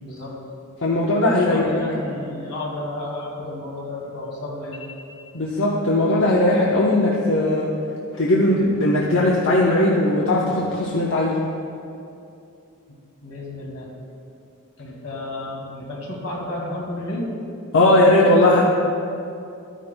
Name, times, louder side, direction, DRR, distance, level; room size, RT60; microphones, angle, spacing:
voice 1, 0.0-0.4 1.5-5.1 13.2-13.9 14.8-17.3, left 1 dB, 80° left, -3 dB, 2.2 m, -32 dB
voice 2, 0.8-1.7 5.3-7.7 8.1-11.4 17.7-18.7, left 1 dB, 60° left, -4 dB, 0.9 m, -18 dB
13.0 x 10.0 x 2.2 m, 2.7 s
head